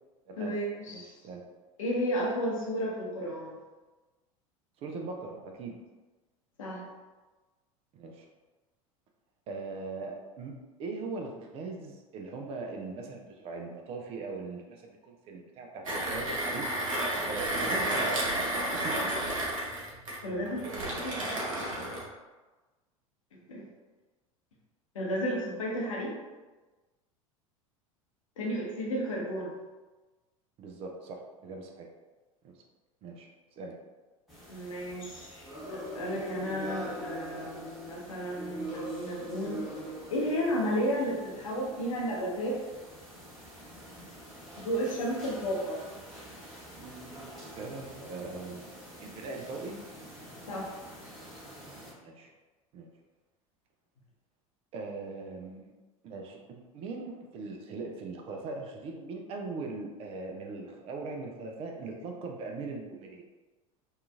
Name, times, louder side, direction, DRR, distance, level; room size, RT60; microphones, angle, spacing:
voice 1, 0.4-1.2 1.8-3.6 6.6-6.8 20.2-21.4 23.5-23.6 24.9-26.1 28.4-29.5 34.5-39.5 40.1-42.6 44.6-45.8 50.5-50.7, equal, 65° left, -3 dB, 0.8 m, -33 dB
voice 2, 0.9-1.4 4.8-5.8 7.9-8.3 9.5-16.7 17.3-19.1 30.6-31.9 32.4-32.6 33.0-33.3 33.6-33.7 47.6-48.6 49.0-49.8 51.9-52.3 52.7-52.9 54.7-55.7 56.0-63.2, right 3 dB, 35° right, 2 dB, 0.4 m, -40 dB
Mechanisms, 15.8-22.1, right 1 dB, 70° right, 0.7 m, -31 dB
sound 1, 34.3-51.9, right 1 dB, ahead, 1.1 m, -44 dB
2.7 x 2.4 x 2.4 m, 1.2 s
figure-of-eight pair, 75°, 18 cm